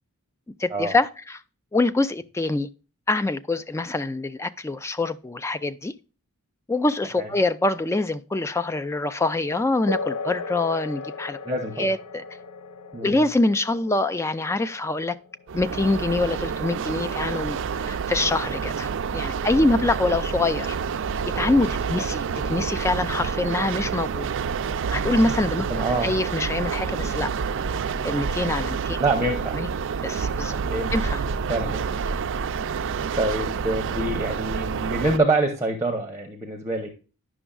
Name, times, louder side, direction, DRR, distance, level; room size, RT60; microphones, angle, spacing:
voice 1, 0.6-1.4 1.7-2.7 3.1-5.9 6.7-11.4 11.8-12.2 13.0-15.2 15.5-17.6 17.8-20.8 21.4-24.3 24.9-25.7 26.0-27.3 28.0-29.0 29.6-29.7 30.0-30.6 30.9-31.2, left 2 dB, 10° left, 0.3 m, -25 dB
sound 1, 9.9-17.9, left 3 dB, 85° left, 0.5 m, -37 dB
voice 2, 11.4-11.9 12.9-13.2 21.9-22.0 25.7-26.1 29.0-29.6 30.6-30.9 31.5-31.9 33.2-36.9, right 2 dB, 15° right, 0.8 m, -26 dB
sound 2, 15.5-35.2, right 6 dB, 60° right, 0.4 m, -28 dB
10.0 x 6.0 x 2.3 m
head